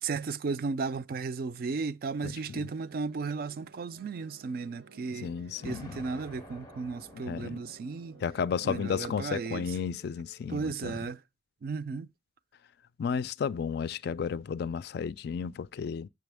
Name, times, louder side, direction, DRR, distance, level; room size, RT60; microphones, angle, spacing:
voice 1, 0.0-5.3 5.6-8.2 8.6-9.6 10.5-11.2 11.6-12.1, right 4 dB, 50° right, 0.4 m, -35 dB
voice 2, 2.2-2.7 5.2-6.0 7.1-7.6 8.2-11.0 13.0-16.1, left 6 dB, 60° left, 0.3 m, -33 dB
sound 1, 2.4-10.8, right 2 dB, 90° right, 0.9 m, -55 dB
Explosion, 5.6-8.6, left 1 dB, 20° left, 0.6 m, -51 dB
6.7 x 6.1 x 3.4 m
head